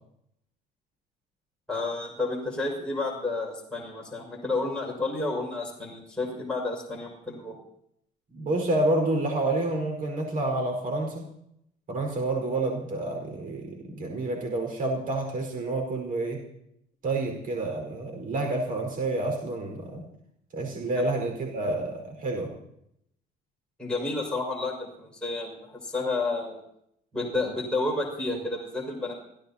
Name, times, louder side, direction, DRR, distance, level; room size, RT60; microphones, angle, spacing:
voice 1, 1.7-7.6 23.8-26.6 27.1-29.1, left 2 dB, 5° left, -4 dB, 6.0 m, -31 dB
voice 2, 8.3-11.3 11.9-16.4 17.0-20.1 20.5-22.5, right 2 dB, 55° right, 2 dB, 5.0 m, -29 dB
29.0 x 16.5 x 2.9 m, 0.74 s
cardioid pair, 110°, 17 cm